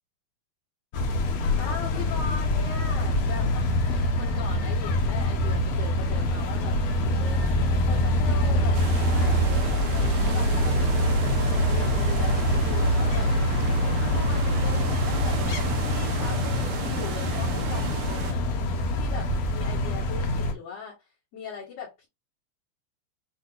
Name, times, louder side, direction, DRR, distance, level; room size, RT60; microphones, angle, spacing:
sound 1, 0.9-20.5, left 1 dB, 75° left, 1.5 m, -24 dB
voice 1, 1.6-6.8 7.1-11.1 11.5-13.3 13.8-18.4 18.9-22.1, left 6 dB, 50° left, 2.7 m, -40 dB
sound 2, 8.7-18.3, right 9 dB, 75° right, 1.8 m, -36 dB
6.0 x 3.3 x 2.5 m
omnidirectional pair, 4.2 m